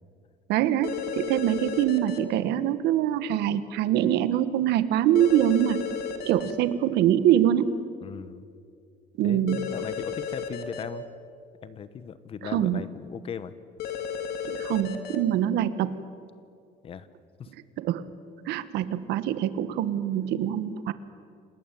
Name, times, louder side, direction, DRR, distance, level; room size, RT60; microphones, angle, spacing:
voice 1, 0.5-5.8 6.2-7.8 9.2-9.7 12.5-12.8 14.5-16.0 17.8-18.0 18.5-20.9, right 11 dB, 85° right, 13 dB, 1.4 m, -24 dB
sound 1, 0.8-2.2 5.2-6.5 9.5-10.8 13.8-15.2, left 6 dB, 70° left, 2.4 m, -33 dB
voice 2, 8.0-8.5 9.2-11.0 11.6-13.5 16.8-17.1 17.4-17.5, left 7 dB, 35° left, 14 dB, 1.0 m, -38 dB
28.5 x 19.5 x 9.1 m, 2.3 s
cardioid pair, 175°, 17 cm